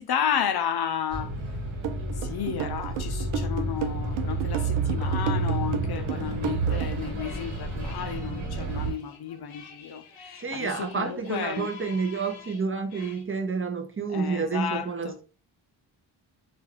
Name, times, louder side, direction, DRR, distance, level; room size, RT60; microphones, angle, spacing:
voice 1, 0.0-1.3 2.2-11.7 14.1-15.2, left 8 dB, 55° left, 0.5 m, -32 dB
Bus, 1.1-8.9, right 2 dB, 70° right, 1.4 m, -30 dB
sound 1, 1.8-7.1, right 11 dB, 90° right, 0.5 m, -33 dB
sound 2, 6.7-13.2, left 6 dB, 80° left, 0.8 m, -48 dB
voice 2, 10.3-15.2, right 4 dB, 25° right, 0.5 m, -29 dB
2.4 x 2.2 x 3.2 m
supercardioid pair, 45°, 48 cm